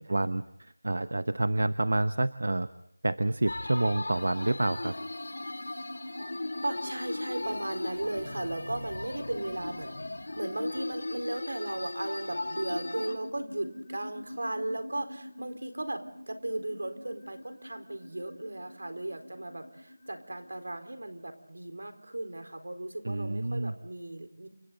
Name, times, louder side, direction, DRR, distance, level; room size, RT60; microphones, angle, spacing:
voice 1, 0.0-2.7 3.0-4.9 23.0-23.7, right 2 dB, 60° right, 13 dB, 0.9 m, -28 dB
sound 1, 3.5-13.2, left 2 dB, 65° left, 2.6 m, -37 dB
sound 2, 4.8-20.7, left 1 dB, 30° left, 3.4 m, -47 dB
voice 2, 6.6-9.9 10.4-24.5, right 1 dB, 80° right, 8 dB, 4.2 m, -36 dB
29.5 x 25.5 x 3.9 m, 0.77 s
figure-of-eight pair, 175°, 0 cm